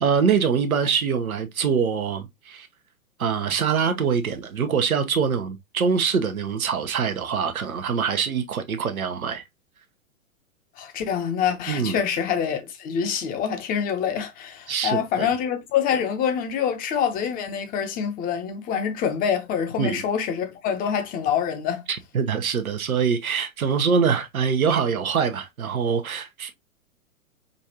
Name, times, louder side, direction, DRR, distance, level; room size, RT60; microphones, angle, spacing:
voice 1, 0.0-2.7 3.2-9.4 11.7-12.0 14.7-15.3 19.8-20.0 21.9-26.5, right 6 dB, 85° right, 0.8 m, -24 dB
voice 2, 10.8-21.8, left 8 dB, 20° left, 0.7 m, -26 dB
5.2 x 2.4 x 2.7 m
hypercardioid pair, 115°, 41 cm